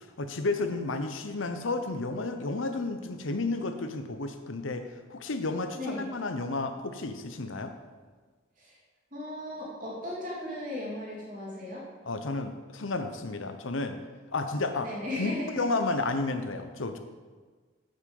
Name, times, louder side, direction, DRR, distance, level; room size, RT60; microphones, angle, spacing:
voice 1, 0.0-7.7 12.1-14.0 14.3-14.9 15.2-17.0, left 3 dB, 90° left, 8 dB, 0.9 m, -32 dB
voice 2, 5.7-6.0 8.6-8.8 9.1-11.8 14.8-15.6, left 1 dB, 45° right, -5 dB, 3.2 m, -36 dB
8.6 x 8.0 x 5.4 m, 1.4 s
head